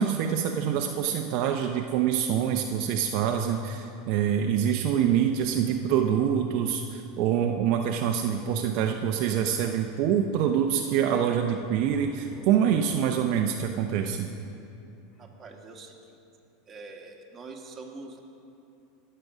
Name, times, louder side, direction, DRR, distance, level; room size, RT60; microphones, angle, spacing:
voice 1, 0.0-14.3, right 8 dB, 55° right, 3 dB, 0.6 m, -25 dB
sound 1, 4.8-6.8 8.5-10.2 11.5-13.8 15.1-15.2, left 2 dB, 45° left, 2.1 m, -49 dB
voice 2, 15.2-16.2 16.7-18.2, right 3 dB, 25° right, 0 dB, 1.7 m, -44 dB
17.0 x 6.7 x 6.2 m, 2.8 s
supercardioid pair, 120°, 0 cm